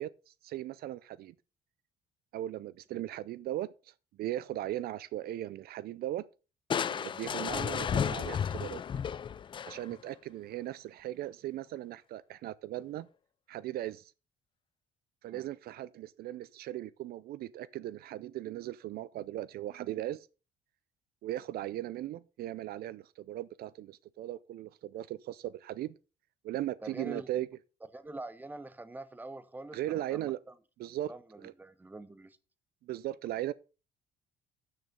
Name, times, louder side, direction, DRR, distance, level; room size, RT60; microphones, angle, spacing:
voice 1, 0.0-1.3 2.3-3.9 4.2-6.2 6.9-8.8 9.6-13.1 13.5-14.1 15.2-20.3 21.2-25.9 26.4-27.5 29.7-30.4 30.8-31.1 31.4-31.5 32.8-33.5, right 14 dB, 65° right, 0.4 m, -38 dB
Crushing, 6.7-10.1, left 7 dB, 30° left, 0.3 m, -33 dB
voice 2, 26.8-27.3 27.9-30.5 31.1-32.4, right 2 dB, 10° right, 0.9 m, -45 dB
8.5 x 6.5 x 5.3 m
cardioid pair, 110°, 17 cm